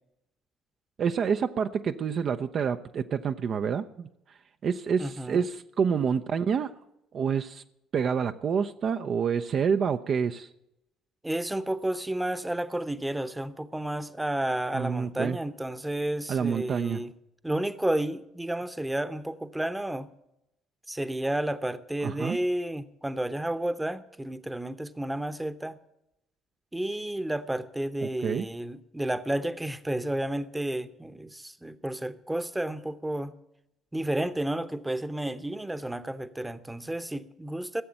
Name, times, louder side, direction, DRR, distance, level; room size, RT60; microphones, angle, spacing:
voice 1, 1.0-4.1 4.6-6.7 7.1-7.6 7.9-10.5 14.7-15.4 16.3-17.0 22.0-22.4 28.0-28.5, right 6 dB, 50° right, 0.6 m, -28 dB
voice 2, 5.0-5.4 11.2-17.1 17.4-20.1 20.9-25.8 26.7-33.3 33.9-37.8, right 1 dB, 10° right, 0.9 m, -31 dB
15.5 x 7.7 x 8.7 m
hypercardioid pair, 50°, 0 cm